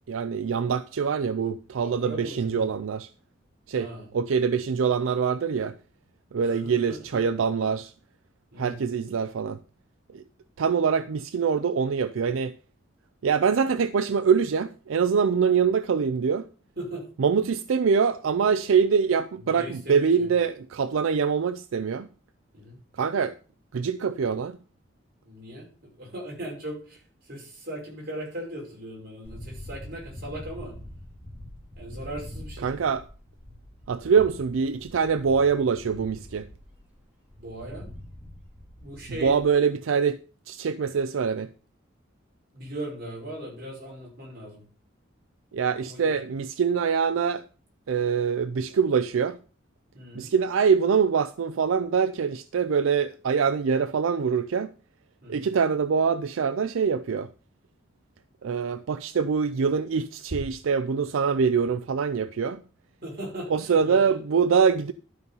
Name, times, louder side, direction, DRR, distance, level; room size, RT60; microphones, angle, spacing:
voice 1, 0.1-3.1 3.7-3.9 4.1-5.7 6.3-7.9 8.6-9.6 10.1-10.2 10.6-12.6 13.2-16.4 17.2-22.1 22.9-23.3 23.7-24.6 32.6-33.0 33.9-36.5 39.2-40.2 40.5-41.5 45.5-47.4 47.9-49.4 50.1-54.7 55.3-57.3 58.4-62.6 63.5-64.9, right 6 dB, 85° right, 0.4 m, -24 dB
voice 2, 1.8-2.6 3.7-4.1 6.4-7.2 8.5-8.8 16.8-17.0 19.4-20.3 22.5-22.8 25.2-30.8 31.8-32.7 37.4-37.9 38.8-39.4 42.5-44.6 45.7-46.2 49.9-50.3 55.2-55.4 63.0-64.2, right 1 dB, 50° right, 5.6 m, -39 dB
sound 1, 29.2-39.5, left 1 dB, 5° right, 2.5 m, -44 dB
12.0 x 5.4 x 5.5 m
head